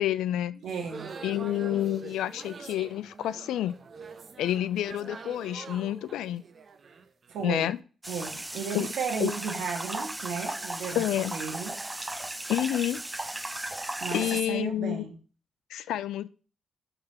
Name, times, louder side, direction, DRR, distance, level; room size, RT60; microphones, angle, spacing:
voice 1, 0.0-0.6 1.2-3.8 4.4-6.4 7.4-7.8 8.7-8.9 9.2-9.3 10.9-11.3 12.5-13.0 14.1-15.0 15.7-16.3, left 12 dB, 85° left, 0.3 m, -29 dB
sound 1, 0.6-7.6, right 5 dB, 55° right, 0.7 m, -44 dB
voice 2, 0.6-1.1 7.3-7.7 8.1-11.0 11.3-11.8 14.0-15.2, right 6 dB, 80° right, 1.4 m, -34 dB
sound 2, 8.0-14.4, right 1 dB, 15° right, 0.5 m, -36 dB
5.7 x 3.4 x 5.5 m
supercardioid pair, 55°, 0 cm